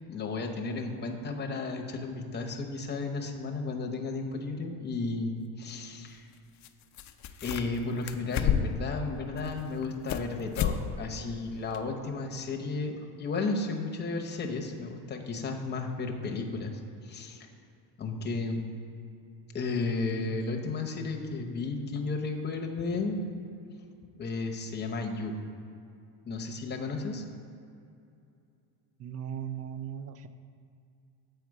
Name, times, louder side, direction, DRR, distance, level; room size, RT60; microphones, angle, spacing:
voice 1, 0.1-6.3 7.4-17.5 18.0-18.6 19.5-23.2 24.2-25.3 26.3-27.2, left 3 dB, 25° left, 2 dB, 0.8 m, -33 dB
sound 1, 4.9-5.0 6.6-6.7 6.9-7.8 8.1-8.9 9.4-10.3 10.5-10.8 11.1-11.2 11.7-11.8, left 8 dB, 40° left, 0.4 m, -30 dB
voice 2, 29.0-30.3, right 9 dB, 35° right, 11 dB, 0.4 m, -37 dB
7.7 x 4.6 x 4.8 m, 2.5 s
cardioid pair, 110°, 45 cm